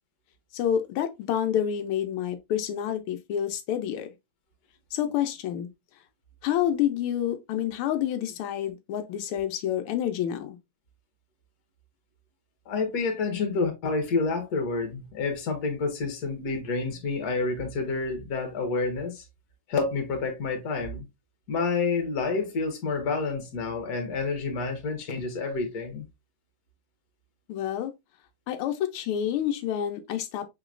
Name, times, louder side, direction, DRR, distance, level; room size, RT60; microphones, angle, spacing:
voice 1, 0.5-4.1 4.9-5.7 6.4-10.6 27.5-27.9 28.5-30.5, left 10 dB, 90° left, 1.5 m, -28 dB
voice 2, 12.7-19.2 19.7-21.0 21.5-26.0, left 4 dB, 50° left, 1.5 m, -29 dB
5.4 x 2.9 x 2.4 m
omnidirectional pair, 2.3 m